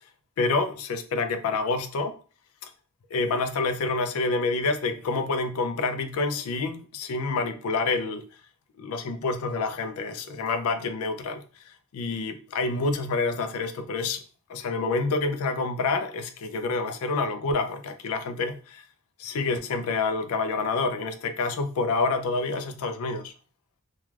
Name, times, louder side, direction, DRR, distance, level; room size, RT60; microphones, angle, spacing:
voice 1, 0.4-2.2 2.6-2.7 3.1-8.2 8.8-11.4 11.9-14.2 14.5-18.8 19.2-23.3, left 3 dB, 80° left, 0.4 m, -28 dB
2.3 x 2.3 x 3.1 m
head